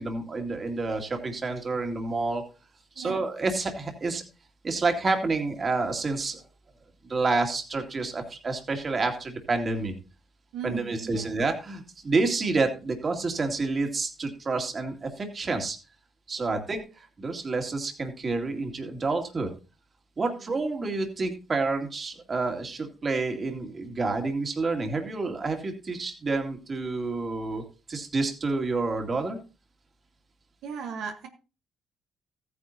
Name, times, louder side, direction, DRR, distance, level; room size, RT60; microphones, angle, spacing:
voice 1, 0.0-2.4 3.0-4.2 4.6-6.4 7.1-9.9 10.6-15.8 16.3-16.8 17.2-19.5 20.2-27.6 27.9-29.4, right 3 dB, 35° right, 4 dB, 2.3 m, -29 dB
voice 2, 10.5-11.3 16.5-16.6 20.2-20.5 30.6-31.3, right 6 dB, 85° right, 3 dB, 1.3 m, -37 dB
14.5 x 9.6 x 2.8 m, 0.31 s
cardioid pair, 90°, 0 cm